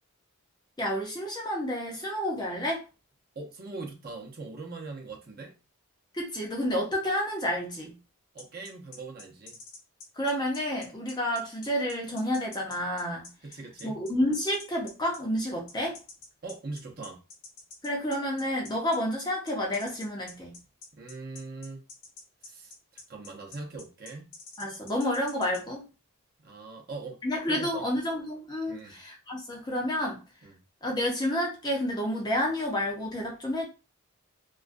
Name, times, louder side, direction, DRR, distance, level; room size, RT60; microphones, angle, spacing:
voice 1, 0.8-2.8 6.1-8.0 10.1-13.3 13.8-16.0 17.8-20.6 24.6-25.9 27.2-30.2 30.8-33.7, equal, 20° left, 0.5 m, -30 dB
voice 2, 3.4-5.6 8.3-9.6 13.4-14.0 16.4-17.2 20.9-21.8 22.5-24.4 26.4-27.2 27.5-27.9 28.7-28.9 30.4-30.5, right 3 dB, 45° right, 0.6 m, -41 dB
sound 1, 8.4-25.6, left 4 dB, 85° left, 0.8 m, -47 dB
2.3 x 2.1 x 2.5 m
head